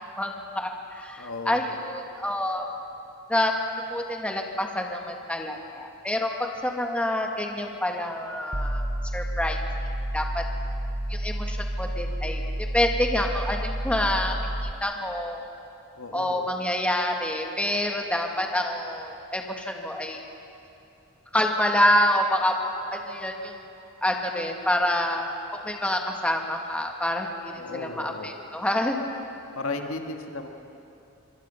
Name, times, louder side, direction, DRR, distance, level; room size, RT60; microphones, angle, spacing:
voice 1, 0.2-2.7 3.3-3.5 3.9-8.9 9.1-9.6 10.1-10.4 11.1-14.3 14.6-15.5 16.1-20.2 21.3-22.5 22.9-23.7 24.0-29.2, left 1 dB, 5° left, 2 dB, 1.6 m, -27 dB
voice 2, 1.2-1.6 15.9-16.4 27.5-28.3 29.5-30.5, left 3 dB, 70° left, 3 dB, 1.8 m, -34 dB
sound 1, 8.5-14.7, right 1 dB, 15° right, 0.7 m, -30 dB
25.0 x 24.5 x 5.6 m, 2.9 s
head